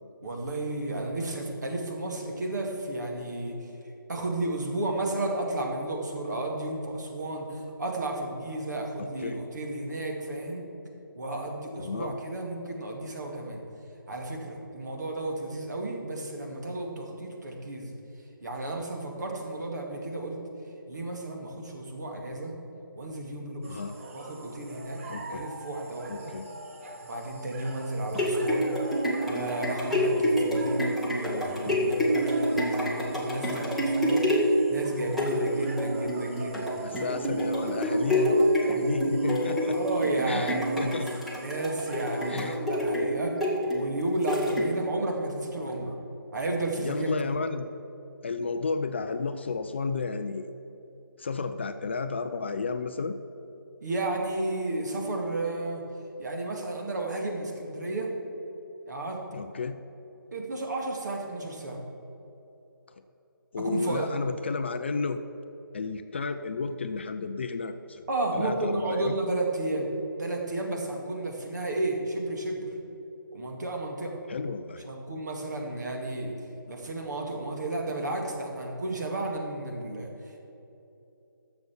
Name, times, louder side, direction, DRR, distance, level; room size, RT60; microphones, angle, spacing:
voice 1, 0.2-3.7 4.1-10.6 11.2-13.6 14.1-17.9 18.4-20.4 20.9-22.5 22.9-23.8 24.1-25.0 25.3-26.3 27.0-28.7 29.2-36.8 39.6-41.0 41.3-43.3 43.7-45.9 46.3-47.1 53.8-55.8 56.2-58.1 58.9-59.2 60.3-61.8 63.6-64.1 68.1-69.9 70.2-72.7 73.3-74.2 74.8-76.3 76.7-80.1, right 2 dB, 50° right, 1 dB, 2.1 m, -32 dB
voice 2, 9.0-9.4 11.8-12.2 23.7-24.0 25.1-25.5 26.1-26.5 36.8-39.8 40.3-41.3 42.3-42.6 46.8-47.7 48.2-50.5 51.2-53.2 59.3-59.8 63.5-65.2 65.7-68.0 68.3-69.2 74.3-74.8, left 4 dB, 30° left, 9 dB, 0.4 m, -32 dB
sound 1, 23.6-42.6, right 3 dB, 35° right, 1.0 m, -44 dB
sound 2, 28.1-45.0 45.5-45.6, equal, ahead, 0.8 m, -27 dB
10.5 x 7.0 x 7.2 m, 3.0 s
figure-of-eight pair, 160°, 12 cm